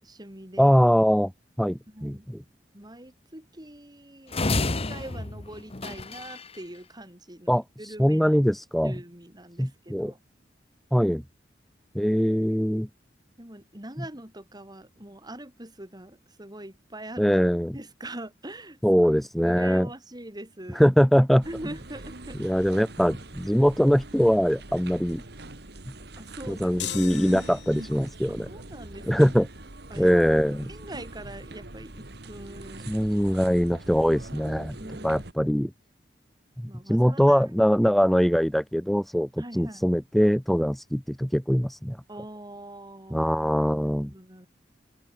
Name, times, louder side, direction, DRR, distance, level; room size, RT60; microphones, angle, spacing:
voice 1, 0.0-0.8 1.9-2.3 2.7-8.4 8.8-10.2 13.4-19.0 19.4-20.8 21.4-22.5 26.2-27.0 28.3-29.2 29.9-30.2 30.5-32.9 33.3-33.5 34.8-35.6 36.7-37.4 37.8-37.9 39.4-39.9 42.1-44.5, right 1 dB, 25° right, 6.7 m, -43 dB
voice 2, 0.6-1.3 1.6-2.4 7.5-8.9 9.6-10.1 10.9-11.2 11.9-12.9 17.2-17.8 18.8-19.9 20.7-21.4 22.4-25.2 26.5-28.5 29.1-29.5 30.0-30.7 32.9-34.8 35.0-35.7 36.6-42.0 43.1-44.1, equal, ahead, 0.4 m, -22 dB
sound 1, 4.3-6.6, left 2 dB, 35° left, 1.3 m, -29 dB
sound 2, 21.4-35.3, right 2 dB, 70° right, 2.5 m, -43 dB
sound 3, 26.8-28.1, left 11 dB, 70° left, 1.1 m, -37 dB
head